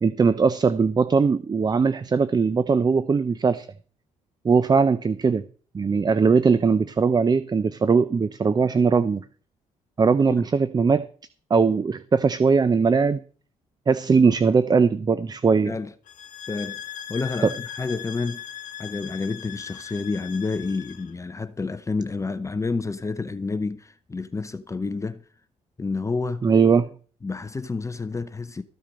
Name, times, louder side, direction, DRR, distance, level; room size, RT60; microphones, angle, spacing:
voice 1, 0.0-3.7 4.4-5.4 5.7-9.2 10.0-11.0 11.5-13.2 13.9-15.8 17.4-17.5 26.4-26.9, right 5 dB, 30° right, 0.6 m, -20 dB
sound 1, 16.1-21.1, left 10 dB, 70° left, 1.2 m, -39 dB
voice 2, 16.5-18.4 18.8-25.2 25.8-26.5 27.2-28.6, left 4 dB, 20° left, 0.7 m, -29 dB
14.0 x 7.4 x 5.2 m
cardioid pair, 75°, 14 cm